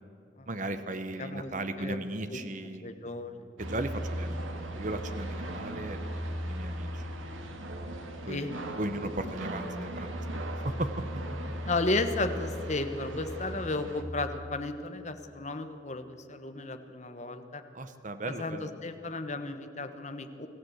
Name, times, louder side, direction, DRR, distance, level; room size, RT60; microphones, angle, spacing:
voice 1, 0.5-2.9 3.6-4.3 4.8-6.1 6.4-7.0 8.3-8.5 8.8-10.1 10.5-11.1 17.7-18.7, right 1 dB, 40° right, 9 dB, 1.1 m, -36 dB
voice 2, 1.2-1.5 1.8-2.0 2.3-2.4 2.8-3.3 8.3-8.5 11.7-17.6 18.4-20.5, left 2 dB, 35° left, 8 dB, 1.2 m, -33 dB
sound 1, 3.6-14.0, right 1 dB, 90° right, 1.9 m, -37 dB
24.5 x 15.0 x 8.1 m, 2.7 s
head